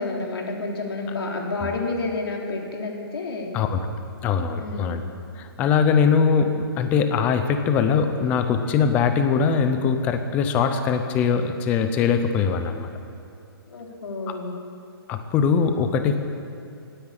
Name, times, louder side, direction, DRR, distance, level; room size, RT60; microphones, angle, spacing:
voice 1, 0.0-3.5 4.6-4.9 13.7-14.6, left 3 dB, 75° left, 0 dB, 3.5 m, -29 dB
voice 2, 4.2-5.0 5.4-12.9 15.1-16.2, left 6 dB, 10° left, 7 dB, 0.5 m, -21 dB
16.0 x 9.9 x 8.8 m, 2.5 s
hypercardioid pair, 170°, 13 cm